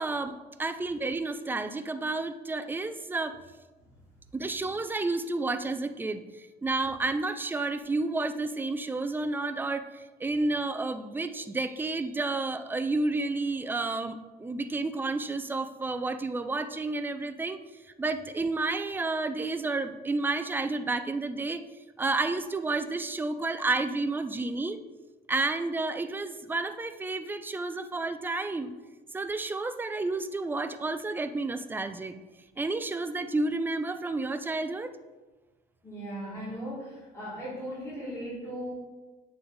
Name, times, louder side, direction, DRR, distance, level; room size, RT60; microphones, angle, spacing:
voice 1, 0.0-3.4 4.3-17.6 18.0-21.6 22.0-24.8 25.3-28.7 29.1-32.2 32.6-34.9, right 3 dB, 10° right, 9 dB, 0.3 m, -31 dB
voice 2, 35.8-38.7, equal, 15° left, -7 dB, 2.0 m, -37 dB
7.7 x 3.3 x 3.9 m, 1.2 s
cardioid pair, 110°, 17 cm